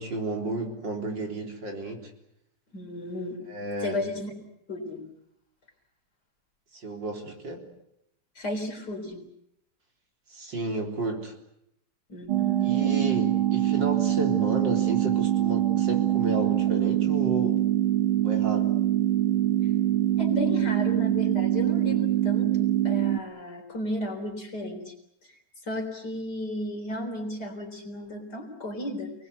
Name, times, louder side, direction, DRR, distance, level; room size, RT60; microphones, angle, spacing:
voice 1, 0.0-2.1 3.5-4.0 6.7-7.6 10.3-11.3 12.6-17.6 18.2-18.7, right 2 dB, 60° right, 2 dB, 4.5 m, -32 dB
voice 2, 2.7-3.4 3.8-4.3 4.7-5.0 8.4-9.2 10.9-11.0 12.1-13.3 20.2-24.9 25.3-29.1, left 1 dB, 50° left, 3 dB, 4.4 m, -34 dB
sound 1, 12.3-23.2, right 13 dB, 90° right, 2.0 m, -24 dB
28.5 x 20.5 x 8.2 m, 0.77 s
omnidirectional pair, 2.2 m